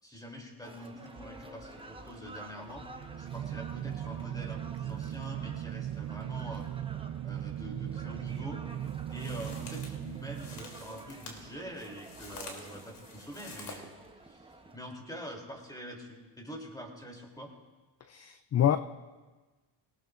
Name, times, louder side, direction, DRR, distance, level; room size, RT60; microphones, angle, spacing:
voice 1, 0.0-2.9 3.2-6.7 7.2-8.6 9.1-13.8 14.3-14.5 14.7-17.5, equal, 10° left, 1 dB, 3.1 m, -45 dB
sound 1, 0.6-14.8, right 2 dB, 10° right, 1.1 m, -51 dB
sound 2, 2.8-11.2, right 11 dB, 35° right, 0.4 m, -38 dB
sound 3, 8.8-13.8, left 3 dB, 55° left, 3.2 m, -48 dB
voice 2, 18.1-18.8, left 10 dB, 35° left, 11 dB, 0.4 m, -26 dB
19.0 x 17.5 x 2.5 m, 1.3 s
cardioid pair, 85°, 49 cm